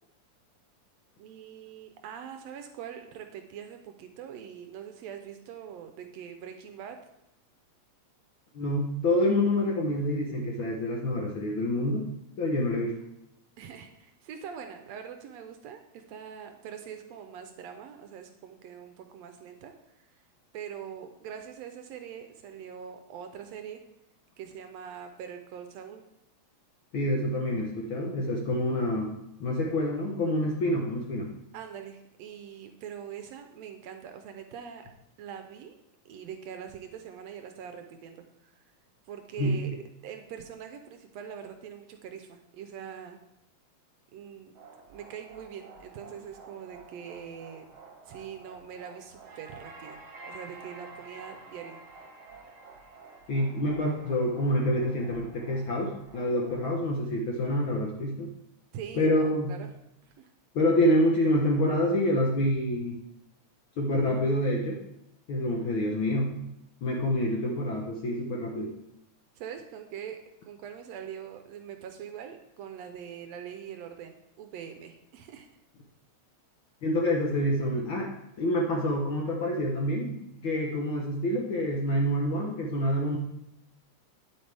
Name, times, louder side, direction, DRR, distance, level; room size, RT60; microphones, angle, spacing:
voice 1, 1.2-7.0 13.6-20.0 20.5-23.8 24.4-26.0 31.5-34.9 35.2-35.8 36.0-38.5 39.1-39.7 40.0-43.2 44.1-44.5 44.9-47.6 48.1-50.0 50.3-51.8 58.7-59.7 60.0-60.3 69.4-70.2 70.4-75.5, right 8 dB, 75° right, 6 dB, 1.7 m, -43 dB
voice 2, 8.5-12.1 12.4-12.9 26.9-29.1 29.4-31.3 39.4-39.6 53.3-58.3 58.9-59.5 60.5-63.0 63.8-64.8 65.3-66.5 66.8-68.7 76.8-80.2 80.4-83.2, left 1 dB, 65° left, 0 dB, 1.3 m, -27 dB
sound 1, 44.5-56.8, right 3 dB, 55° right, 1.7 m, -49 dB
9.3 x 8.5 x 3.4 m, 0.83 s
omnidirectional pair, 3.3 m